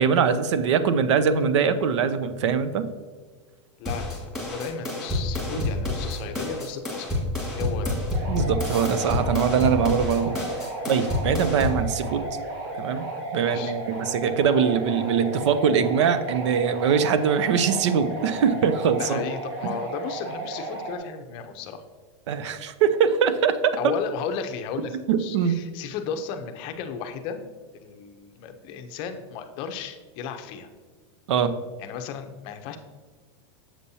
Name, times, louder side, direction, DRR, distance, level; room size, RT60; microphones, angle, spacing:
voice 1, 0.0-2.9 8.3-10.3 10.9-12.3 12.7-19.2 19.6-19.8 22.3-23.9 25.1-25.6 31.3-31.6, right 7 dB, 75° right, 12 dB, 0.6 m, -22 dB
voice 2, 3.8-7.2 7.5-8.0 13.4-13.7 19.0-21.8 23.8-27.4 27.8-30.7 31.8-32.8, left 6 dB, 35° left, 6 dB, 0.6 m, -34 dB
sound 1, 3.9-11.9, left 2 dB, ahead, 1.8 m, -28 dB
sound 2, 8.1-21.0, right 2 dB, 45° right, 2.0 m, -34 dB
7.3 x 6.9 x 2.7 m, 1.5 s
supercardioid pair, 170°, 15 cm